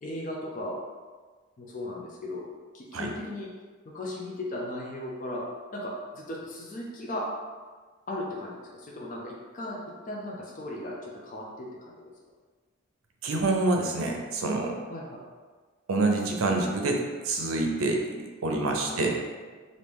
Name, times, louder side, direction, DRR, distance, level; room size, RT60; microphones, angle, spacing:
voice 1, 0.0-0.8 1.6-3.5 3.9-5.4 5.7-7.2 8.1-9.8 10.1-12.1 14.9-15.2 18.5-18.6 18.9-19.1, left 1 dB, 40° left, -3 dB, 0.4 m, -37 dB
voice 2, 13.2-14.7 15.9-19.2, right 2 dB, 80° right, 2 dB, 0.5 m, -27 dB
3.1 x 2.6 x 3.4 m, 1.5 s
head